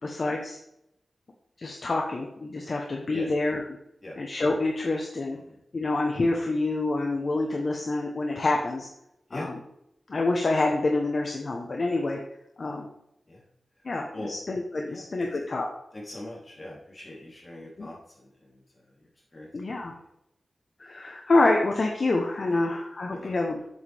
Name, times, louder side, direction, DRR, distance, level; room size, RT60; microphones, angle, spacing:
voice 1, 0.0-0.6 1.6-3.6 4.2-5.4 5.7-8.9 9.3-9.5 10.1-12.2 12.6-12.9 13.8-15.7 17.8-17.9 19.5-19.9 20.8-23.7, left 2 dB, 45° left, 1 dB, 1.0 m, -27 dB
voice 2, 14.9-15.3 15.9-19.5 19.9-20.1 22.4-22.6 23.1-23.3, left 1 dB, 25° left, -5 dB, 3.3 m, -41 dB
8.0 x 7.6 x 3.5 m, 0.79 s
wide cardioid pair, 140°, 0 cm